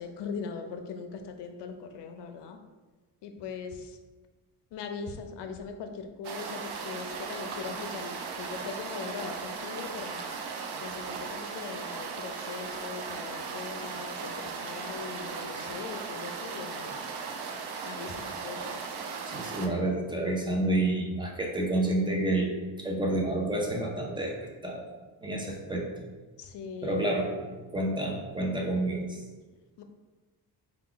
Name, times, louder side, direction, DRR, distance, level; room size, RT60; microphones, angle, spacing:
voice 1, 0.0-2.6 3.2-3.9 4.7-10.3 10.8-17.0 17.8-18.8 26.4-27.4 29.8-29.9, left 5 dB, 70° left, 6 dB, 0.6 m, -40 dB
sound 1, 6.2-19.7, right 5 dB, 65° right, 0.5 m, -37 dB
voice 2, 19.3-24.4 24.6-24.9 25.2-25.9 26.8-29.2, right 1 dB, 10° right, 0 dB, 0.4 m, -29 dB
4.5 x 2.3 x 3.7 m, 1.3 s
cardioid pair, 170°, 42 cm